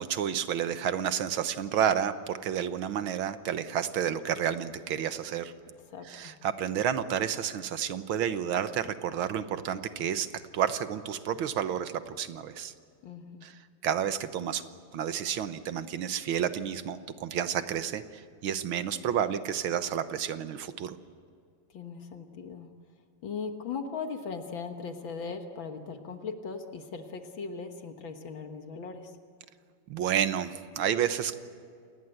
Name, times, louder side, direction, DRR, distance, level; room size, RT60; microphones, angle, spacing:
voice 1, 0.0-5.5 6.0-10.3 10.5-12.7 13.4-14.6 14.9-21.0 29.9-31.4, right 9 dB, 85° right, 11 dB, 1.9 m, -30 dB
voice 2, 5.9-6.3 13.0-13.5 21.7-22.7 23.2-29.1, left 5 dB, 75° left, 6 dB, 2.2 m, -38 dB
28.0 x 19.5 x 7.9 m, 2.2 s
omnidirectional pair, 2.2 m